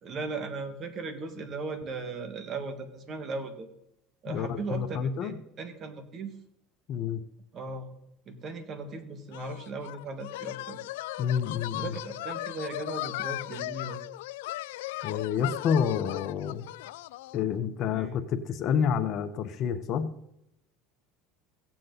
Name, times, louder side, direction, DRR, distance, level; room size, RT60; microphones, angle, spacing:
voice 1, 0.0-3.7 4.2-6.3 7.5-7.9 8.3-10.8 11.8-14.0 17.9-18.2, right 3 dB, 40° right, 7 dB, 1.8 m, -37 dB
voice 2, 4.3-5.4 6.9-7.2 11.2-11.9 15.0-16.7 17.3-20.1, left 7 dB, 50° left, 9 dB, 1.0 m, -29 dB
sound 1, 9.3-17.4, left 18 dB, 85° left, 0.3 m, -37 dB
17.0 x 7.5 x 4.0 m, 0.81 s
supercardioid pair, 110°, 0 cm